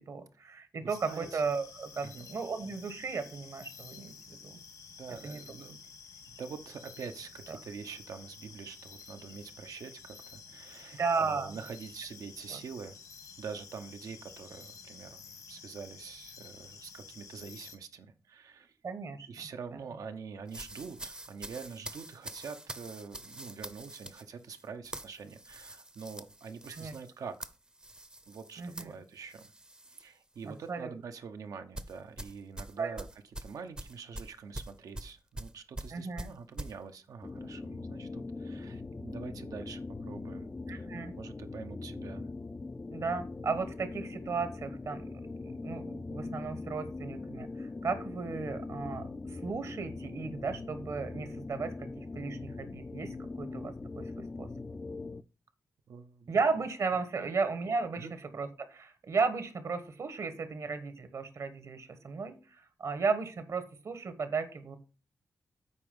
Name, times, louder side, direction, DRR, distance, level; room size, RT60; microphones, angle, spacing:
voice 1, 0.1-4.6 5.2-5.4 7.5-7.6 11.0-11.6 12.5-12.6 18.8-19.3 26.7-26.9 28.6-28.9 30.4-30.9 32.8-33.0 35.9-36.3 40.7-41.1 42.9-45.1 45.4-54.5 56.3-58.1 58.3-64.8, right 4 dB, 65° right, 10 dB, 1.4 m, -35 dB
sound 1, 0.9-17.8, left 6 dB, 80° left, 1.6 m, -51 dB
voice 2, 1.0-1.4 2.0-2.3 5.0-5.8 6.4-13.0 13.4-18.7 19.3-27.5 28.3-29.5 30.0-33.1 33.4-40.9 41.2-42.3 55.9-56.3 57.2-57.3 57.9-58.1, right 5 dB, 80° right, 8 dB, 0.9 m, -45 dB
sound 2, 20.5-30.1 30.4-30.7 31.7-36.7, right 1 dB, 15° right, 0.6 m, -45 dB
sound 3, 37.2-55.2, left 3 dB, 25° left, 0.4 m, -41 dB
8.4 x 4.8 x 5.4 m, 0.34 s
wide cardioid pair, 110°, 6 cm